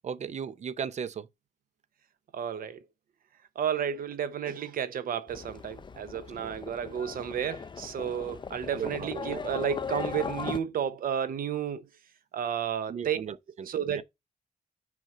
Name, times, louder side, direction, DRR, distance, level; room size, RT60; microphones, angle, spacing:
voice 1, 0.0-1.3 6.4-6.5 8.7-9.4 12.9-13.7 14.0-14.1, right 7 dB, 50° right, 0.7 m, -36 dB
voice 2, 2.3-2.8 3.5-11.9 12.3-13.2 13.7-14.0, right 8 dB, 80° right, 1.0 m, -32 dB
Livestock farm animals working animals, 5.3-10.6, left 5 dB, 35° left, 0.6 m, -38 dB
6.4 x 5.3 x 4.2 m
wide cardioid pair, 150°, 15 cm